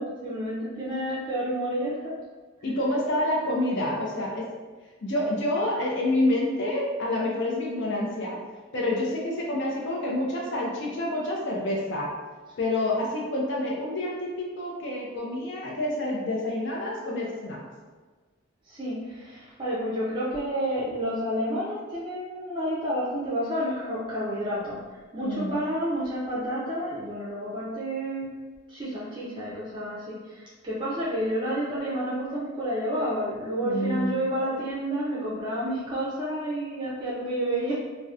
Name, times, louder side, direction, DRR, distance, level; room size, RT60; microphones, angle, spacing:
voice 1, 0.0-2.2 18.7-24.8 25.1-28.3 28.7-37.7, equal, 25° right, -9 dB, 0.4 m, -30 dB
voice 2, 2.6-4.4 5.0-8.4 8.7-12.1 12.6-17.6 25.2-25.6 33.6-34.2, left 1 dB, 60° left, -2 dB, 0.5 m, -28 dB
2.7 x 2.1 x 2.3 m, 1.4 s
head